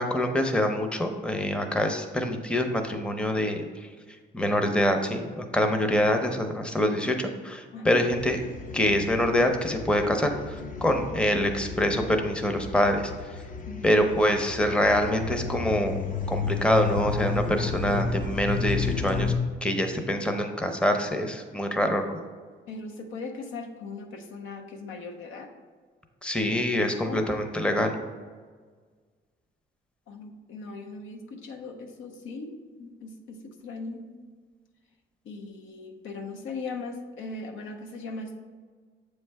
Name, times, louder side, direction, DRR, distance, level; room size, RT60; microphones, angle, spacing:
voice 1, 0.0-3.7 4.3-8.4 8.7-13.1 13.8-16.0 16.3-19.3 19.6-22.2 26.2-28.0, left 1 dB, 5° left, 5 dB, 0.6 m, -25 dB
sound 1, 8.1-19.4, left 5 dB, 40° left, 0.6 m, -33 dB
voice 2, 13.7-14.0 22.7-25.5 26.9-27.3 30.1-34.1 35.2-38.4, left 3 dB, 85° left, 4 dB, 0.8 m, -39 dB
7.2 x 3.3 x 4.6 m, 1.5 s
cardioid pair, 90°, 20 cm